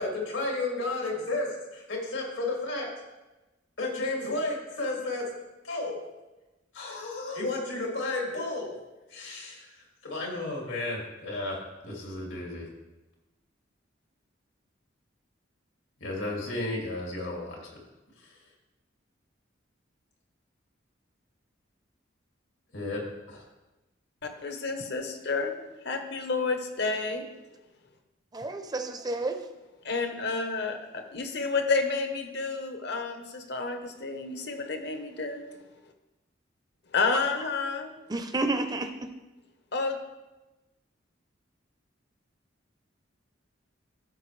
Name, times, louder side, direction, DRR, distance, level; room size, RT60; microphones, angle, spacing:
voice 1, 0.0-2.9 3.8-5.3 5.6-6.0 6.7-8.8 9.1-9.7 10.0-11.6 11.8-12.7 16.0-17.6 22.7-23.0 23.3-23.4, left 2 dB, 85° left, -2 dB, 2.5 m, -32 dB
voice 2, 24.4-25.5 25.8-27.3 29.8-35.5 36.9-37.9 39.7-40.0, left 4 dB, 60° left, 5 dB, 1.0 m, -30 dB
voice 3, 28.3-29.4 38.1-38.9, right 2 dB, 20° right, 6 dB, 0.6 m, -30 dB
14.5 x 5.7 x 3.3 m, 1.1 s
head